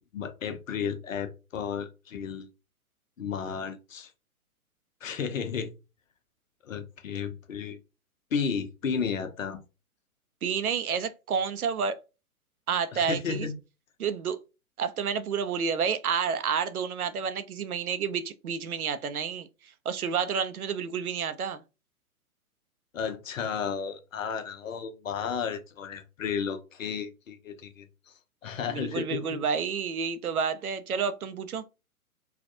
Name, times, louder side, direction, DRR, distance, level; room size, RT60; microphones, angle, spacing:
voice 1, 0.1-2.5 3.2-4.1 5.0-5.7 6.6-7.8 8.3-9.6 12.9-13.6 22.9-28.1 28.4-29.4, left 6 dB, 60° left, 0.8 m, -33 dB
voice 2, 10.4-12.0 12.7-13.5 14.0-14.4 14.8-19.5 19.9-21.6 28.7-31.6, right 6 dB, 75° right, 0.6 m, -30 dB
3.4 x 2.3 x 2.5 m
figure-of-eight pair, 120°, 44 cm